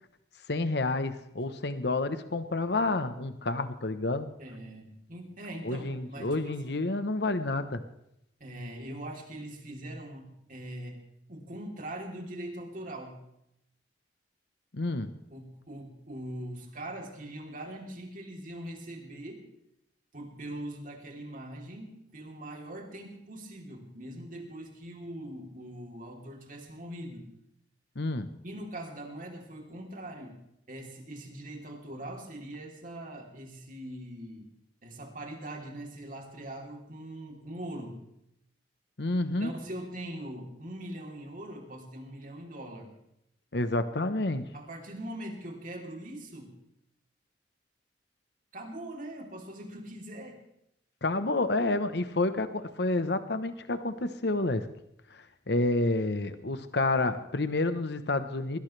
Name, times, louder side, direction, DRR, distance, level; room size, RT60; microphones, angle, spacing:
voice 1, 0.5-4.3 5.6-7.8 14.7-15.1 28.0-28.3 39.0-39.5 43.5-44.5 51.0-54.7 55.1-58.6, left 2 dB, 65° left, 10 dB, 1.1 m, -29 dB
voice 2, 4.4-6.8 8.4-11.0 11.3-13.2 15.3-19.5 20.1-27.3 28.4-30.4 30.7-34.5 34.8-38.0 39.3-42.9 44.5-46.6 48.5-50.4, right 1 dB, 50° right, 1 dB, 3.4 m, -42 dB
21.5 x 18.0 x 3.4 m, 0.79 s
head